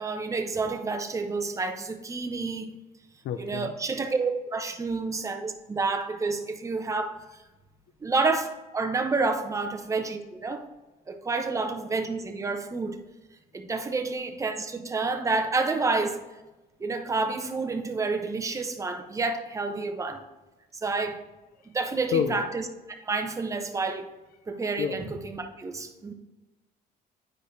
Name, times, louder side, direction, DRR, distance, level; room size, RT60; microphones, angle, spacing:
voice 1, 0.0-2.8 3.4-7.2 8.0-10.6 11.1-13.0 13.5-16.2 16.8-20.2 20.8-21.2 21.7-22.7 23.0-24.0 24.5-26.1, right 3 dB, 20° right, 5 dB, 0.7 m, -29 dB
voice 2, 3.2-3.7 22.1-22.4 24.8-24.9, left 8 dB, 60° left, 8 dB, 0.5 m, -27 dB
9.6 x 4.8 x 2.6 m, 1.1 s
cardioid pair, 110°, 17 cm